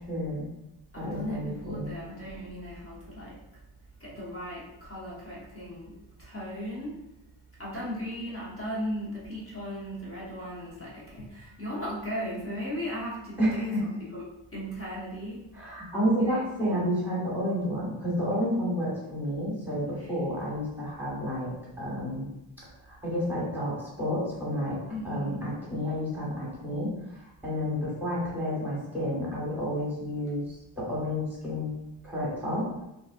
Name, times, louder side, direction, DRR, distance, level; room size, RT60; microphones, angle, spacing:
voice 1, 0.1-0.5 0.9-1.9 13.4-13.8 15.5-22.3 23.0-24.8 25.0-31.7 32.0-32.7, equal, 5° right, -6 dB, 1.4 m, -30 dB
voice 2, 0.9-3.4 4.0-7.0 7.6-13.7 14.0-14.2 14.5-15.5 16.2-16.4 20.0-20.1 24.9-25.5, equal, 25° left, -7 dB, 0.9 m, -37 dB
3.8 x 2.7 x 2.4 m, 0.89 s
wide cardioid pair, 130°, 49 cm